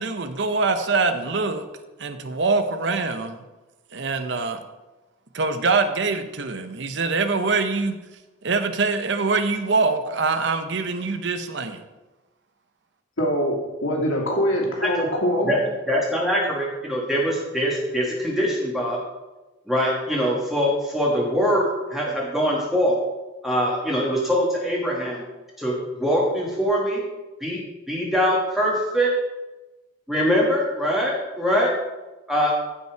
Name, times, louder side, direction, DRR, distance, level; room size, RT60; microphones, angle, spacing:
voice 1, 0.0-1.6 2.0-3.4 3.9-4.6 5.3-8.0 8.4-11.8, right 4 dB, 60° right, 8 dB, 0.8 m, -24 dB
voice 2, 13.2-15.6, equal, 75° left, -2 dB, 2.6 m, -23 dB
voice 3, 15.9-19.0 19.7-22.9 23.4-25.2 25.6-27.1 27.4-27.6 27.9-29.1 30.1-31.7 32.3-32.5, equal, ahead, -4 dB, 1.4 m, -23 dB
14.5 x 5.6 x 4.5 m, 1.1 s
head